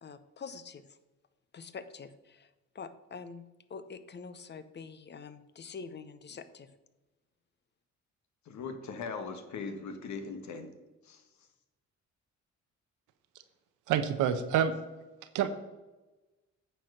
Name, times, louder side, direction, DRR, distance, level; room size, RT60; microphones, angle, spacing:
voice 1, 0.0-1.0 1.5-2.5 2.7-3.4 3.7-6.7, left 5 dB, 35° left, 13 dB, 0.7 m, -45 dB
voice 2, 8.4-10.7 11.0-11.2, left 4 dB, 70° left, 7 dB, 1.4 m, -39 dB
voice 3, 13.9-14.7 15.3-15.5, right 9 dB, 85° right, 10 dB, 0.9 m, -27 dB
9.1 x 4.5 x 6.5 m, 1.1 s
cardioid pair, 90°, 30 cm